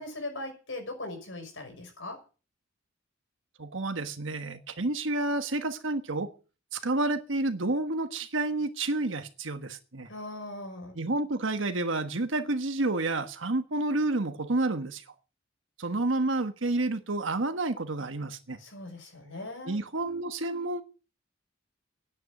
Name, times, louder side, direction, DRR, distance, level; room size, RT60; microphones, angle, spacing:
voice 1, 0.0-2.2 10.1-10.9 18.6-19.8, left 2 dB, 70° left, 6.0 m, -39 dB
voice 2, 3.6-6.3 6.7-10.1 10.9-15.0 15.8-18.6 19.6-20.8, right 2 dB, 75° right, 1.3 m, -30 dB
10.0 x 9.1 x 9.0 m
head